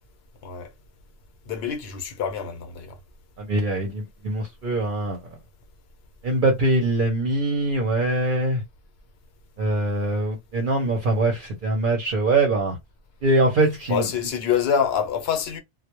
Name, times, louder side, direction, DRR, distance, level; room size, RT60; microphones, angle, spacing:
voice 1, 1.5-3.0 13.9-15.6, left 7 dB, 70° left, 0.8 m, -26 dB
voice 2, 3.4-5.2 6.2-8.6 9.6-12.8 13.2-14.1, right 2 dB, 55° right, 0.7 m, -23 dB
2.1 x 2.0 x 2.9 m
omnidirectional pair, 1.1 m